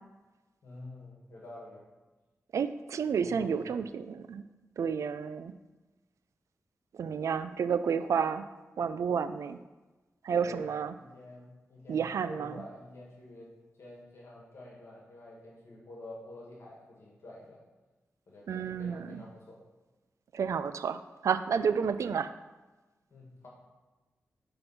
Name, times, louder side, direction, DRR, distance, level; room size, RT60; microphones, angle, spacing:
voice 1, 0.6-1.8 3.2-3.8 10.4-13.5 13.8-17.6 18.3-19.6 23.1-23.5, left 1 dB, 60° left, -4 dB, 2.0 m, -48 dB
voice 2, 2.5-4.4 4.8-5.6 6.9-8.5 8.8-9.6 10.2-10.9 11.9-12.6 18.5-19.2 20.3-22.3, right 6 dB, 85° right, 12 dB, 0.4 m, -31 dB
9.0 x 3.8 x 5.8 m, 1.2 s
wide cardioid pair, 175°, 5 cm